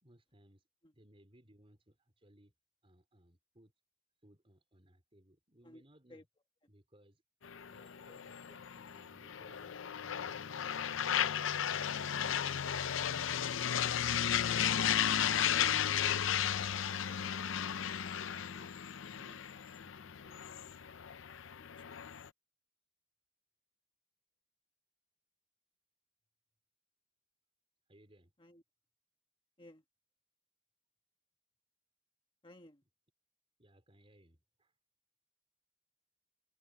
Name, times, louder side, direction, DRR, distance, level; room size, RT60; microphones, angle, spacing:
voice 1, 0.0-0.7 0.9-2.5 2.8-3.7 4.2-6.3 6.7-7.2 7.7-12.8 16.5-18.7 19.1-20.5 21.2-21.3 27.9-28.3 33.6-34.7, right 1 dB, 30° right, 4.3 m, -63 dB
sound 1, 7.4-22.3, left 9 dB, 75° left, 0.6 m, -34 dB
voice 2, 21.6-22.0 28.4-28.6 29.6-29.8 32.4-32.8, left 1 dB, 25° left, 1.4 m, -57 dB
head